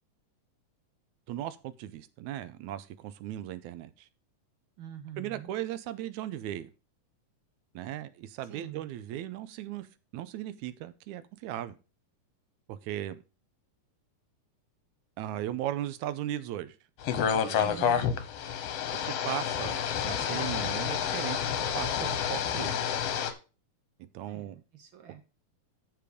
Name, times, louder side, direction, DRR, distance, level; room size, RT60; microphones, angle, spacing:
voice 1, 1.3-4.1 5.2-6.7 7.8-9.9 10.1-11.8 12.7-13.2 15.2-16.8 17.5-18.1 19.0-22.8 24.0-24.6, right 12 dB, 85° right, 2.0 m, -37 dB
voice 2, 4.8-5.5 8.5-8.8 17.5-18.1 24.2-25.2, right 9 dB, 60° right, 1.4 m, -46 dB
sound 1, 17.0-23.3, left 8 dB, 65° left, 1.7 m, -29 dB
7.6 x 6.9 x 5.0 m
omnidirectional pair, 3.4 m